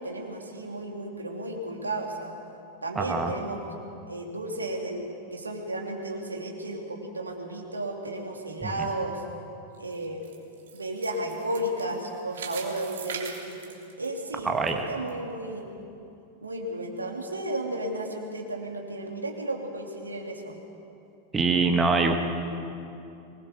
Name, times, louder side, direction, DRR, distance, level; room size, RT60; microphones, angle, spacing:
voice 1, 0.0-2.3 2.8-3.6 4.1-9.2 9.8-10.2 10.7-13.6 14.0-14.5 14.9-15.7 16.4-20.6, right 1 dB, 80° right, 1 dB, 2.9 m, -33 dB
voice 2, 3.0-3.3 8.6-8.7 14.5-14.9 21.3-22.1, right 4 dB, 15° right, 4 dB, 1.7 m, -24 dB
sound 1, 9.7-14.7 15.1-15.2 15.8-15.9, right 6 dB, 65° right, 3.0 m, -41 dB
24.0 x 20.5 x 6.8 m, 2.7 s
figure-of-eight pair, 90°, 0 cm